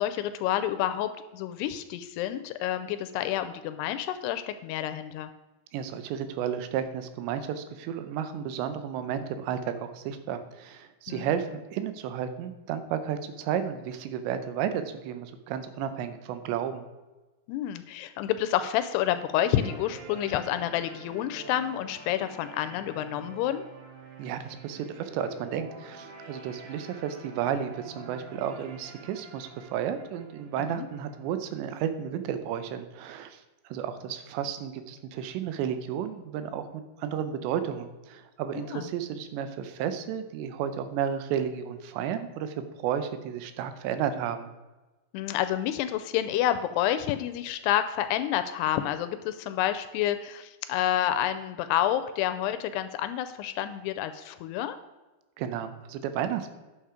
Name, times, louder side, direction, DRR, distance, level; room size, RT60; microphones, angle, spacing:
voice 1, 0.0-5.3 11.1-11.3 17.5-23.6 30.7-30.9 38.7-38.9 45.1-54.8, left 11 dB, 85° left, 10 dB, 2.5 m, -29 dB
voice 2, 5.7-16.9 24.2-44.5 55.4-56.5, right 9 dB, 85° right, 10 dB, 3.0 m, -32 dB
sound 1, 19.5-31.5, right 3 dB, 70° right, 4.4 m, -47 dB
10.0 x 6.8 x 5.0 m, 1.1 s
omnidirectional pair, 4.9 m